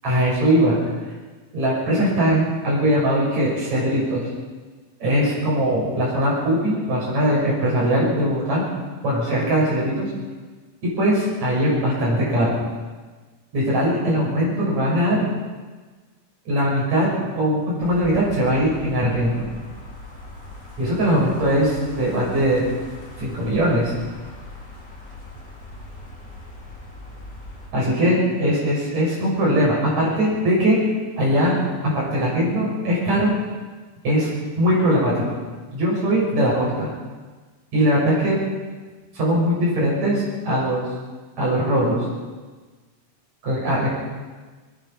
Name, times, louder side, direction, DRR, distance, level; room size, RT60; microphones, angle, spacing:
voice 1, 0.0-0.8 1.5-4.3 5.0-8.6 9.0-10.1 10.8-12.6 13.5-15.2 16.5-19.5 20.8-22.7 23.2-23.9 27.7-30.8 31.2-31.6 31.8-33.3 34.0-34.3 34.6-35.4 35.7-36.9 37.7-38.4 39.1-40.9 41.4-42.0 43.4-43.9, equal, 70° right, -6 dB, 7.7 m, -20 dB
sound 1, 17.8-27.7, left 1 dB, 35° left, 5.9 m, -40 dB
22.5 x 20.5 x 5.8 m, 1.3 s
omnidirectional pair, 3.3 m